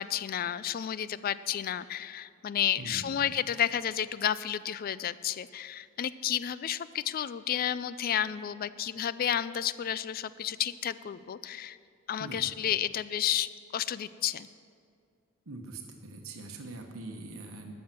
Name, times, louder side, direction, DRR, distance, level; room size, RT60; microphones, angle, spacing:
voice 1, 0.0-11.8 12.1-14.5, left 10 dB, 45° left, 16 dB, 0.3 m, -31 dB
voice 2, 2.8-3.3 12.2-12.5 15.5-17.7, right 2 dB, 70° right, 3 dB, 1.0 m, -43 dB
13.0 x 6.4 x 7.5 m, 2.2 s
head